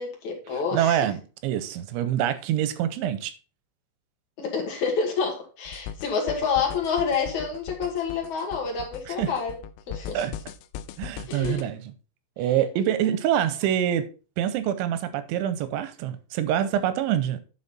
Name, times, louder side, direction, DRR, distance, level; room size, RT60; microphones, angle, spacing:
voice 1, 0.0-1.1 4.4-9.6 9.9-10.2 11.3-11.7, left 5 dB, 60° left, 2.1 m, -28 dB
voice 2, 0.7-3.3 9.1-9.3 10.1-10.3 11.0-11.9 12.4-14.0 14.4-17.4, right 10 dB, 85° right, 3.0 m, -25 dB
sound 1, 5.7-11.6, left 9 dB, 80° left, 2.9 m, -39 dB
9.8 x 5.6 x 4.1 m
omnidirectional pair, 5.6 m